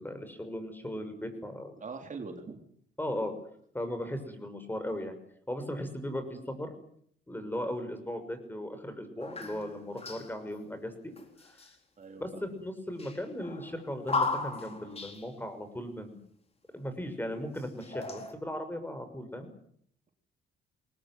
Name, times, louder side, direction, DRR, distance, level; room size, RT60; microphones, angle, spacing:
voice 1, 0.0-1.7 3.0-3.3 3.7-5.2 5.5-6.7 7.3-11.1 11.5-11.6 12.2-16.2 16.7-19.5, left 1 dB, 10° left, 9 dB, 6.0 m, -37 dB
voice 2, 1.8-2.7 12.0-12.4, right 4 dB, 40° right, 4 dB, 3.6 m, -42 dB
sound 1, 9.2-10.5 11.2-11.7 13.0-15.3 16.8-16.9 17.5-18.3, left 3 dB, 30° left, 4.1 m, -36 dB
22.5 x 18.5 x 9.3 m, 0.65 s
cardioid pair, 90°, 20 cm